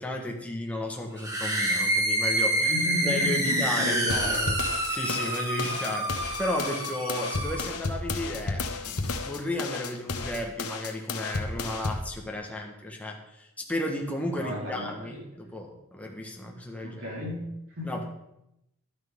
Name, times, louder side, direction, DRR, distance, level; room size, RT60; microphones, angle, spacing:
voice 1, 0.0-2.7 3.0-4.6 4.9-17.0 17.8-18.0, left 1 dB, 5° left, 1 dB, 1.4 m, -34 dB
sound 1, 1.2-7.7, right 1 dB, 15° right, 1.6 m, -28 dB
voice 2, 2.6-4.5 14.4-15.2 16.8-18.0, left 1 dB, 65° right, -4 dB, 4.0 m, -34 dB
sound 2, 4.1-12.1, left 3 dB, 85° left, 1.1 m, -33 dB
11.5 x 10.5 x 3.6 m, 0.85 s
head